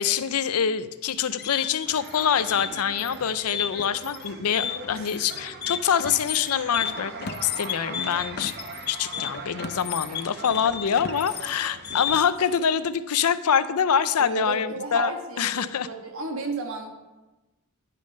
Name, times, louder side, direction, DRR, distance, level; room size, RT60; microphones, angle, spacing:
voice 1, 0.0-8.5 8.9-15.1 15.4-15.9, left 7 dB, 90° left, 14 dB, 0.5 m, -25 dB
sound 1, 1.1-12.5, left 9 dB, 45° left, 0.5 m, -33 dB
sound 2, 1.8-12.0, right 4 dB, 45° right, 0.8 m, -41 dB
voice 2, 4.6-5.0 10.1-10.2 14.2-16.9, right 3 dB, 70° right, 2 dB, 1.6 m, -33 dB
10.5 x 6.4 x 5.5 m, 1.1 s
head